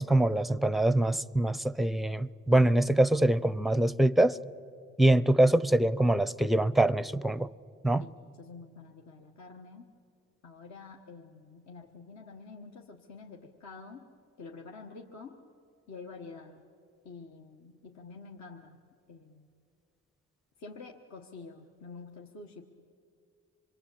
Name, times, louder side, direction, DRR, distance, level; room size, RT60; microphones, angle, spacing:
voice 1, 0.0-4.4 5.0-7.5 7.8-8.0, right 1 dB, ahead, 0.5 m, -24 dB
voice 2, 8.0-9.9 10.4-14.1 14.4-15.4 15.9-16.6 17.0-18.8 19.1-19.5 20.6-22.7, left 4 dB, 65° left, 1.7 m, -48 dB
27.0 x 22.0 x 8.6 m
cardioid pair, 90°, 30 cm